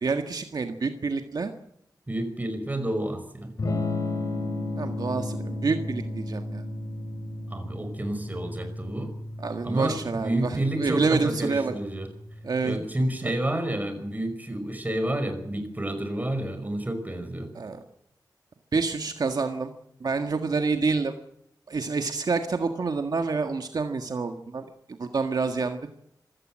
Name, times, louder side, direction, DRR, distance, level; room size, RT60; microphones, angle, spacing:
voice 1, 0.0-1.5 4.8-6.6 9.4-11.7 12.4-12.8 17.5-17.8 18.7-19.7 20.0-21.1 21.7-24.6 25.0-25.8, right 4 dB, 65° right, 6 dB, 1.7 m, -27 dB
voice 2, 2.1-3.5 7.5-9.1 9.6-12.1 12.6-17.5, right 1 dB, 25° right, 8 dB, 5.2 m, -30 dB
Electric guitar / Strum, 3.6-13.3, left 2 dB, 55° left, 4.8 m, -34 dB
26.0 x 16.5 x 7.5 m, 0.74 s
wide cardioid pair, 115°, 7 cm